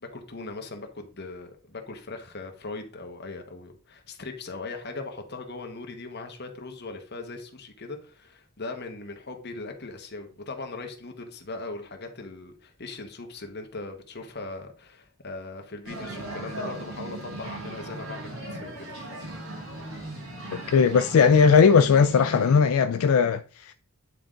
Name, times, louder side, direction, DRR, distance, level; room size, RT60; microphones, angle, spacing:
voice 1, 0.0-18.7 19.0-19.1, left 3 dB, 45° left, 1.2 m, -39 dB
sound 1, 15.9-22.6, right 1 dB, 60° right, 2.1 m, -38 dB
voice 2, 20.7-23.7, left 6 dB, 70° left, 0.3 m, -18 dB
9.2 x 3.8 x 3.8 m
head